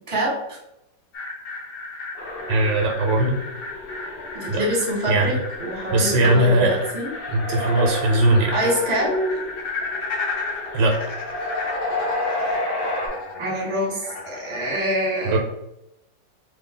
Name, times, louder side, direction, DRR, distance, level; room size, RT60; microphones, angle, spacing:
voice 1, 0.1-0.6 4.4-7.1 8.5-9.2 12.5-12.6 13.4-15.4, equal, 20° right, -4 dB, 1.0 m, -25 dB
sound 1, 1.1-14.8, left 3 dB, 70° left, 1.3 m, -34 dB
sound 2, 2.1-13.1, left 1 dB, 35° left, 1.2 m, -31 dB
voice 2, 2.5-3.4 4.5-4.6 5.1-5.3 5.9-6.8 7.3-8.5 10.7-11.0 15.2-15.4, right 2 dB, 75° right, 1 dB, 1.3 m, -19 dB
3.3 x 2.3 x 3.6 m, 0.84 s
omnidirectional pair, 2.0 m